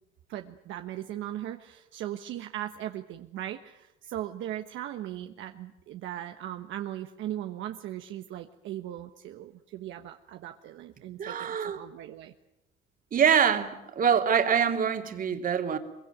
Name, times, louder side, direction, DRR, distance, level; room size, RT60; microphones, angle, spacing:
voice 1, 0.3-12.3, right 12 dB, 70° right, 6 dB, 1.3 m, -38 dB
voice 2, 11.2-11.8 13.1-15.8, right 7 dB, 40° right, 6 dB, 2.8 m, -25 dB
23.0 x 23.0 x 9.2 m, 0.88 s
cardioid pair, 115°, 21 cm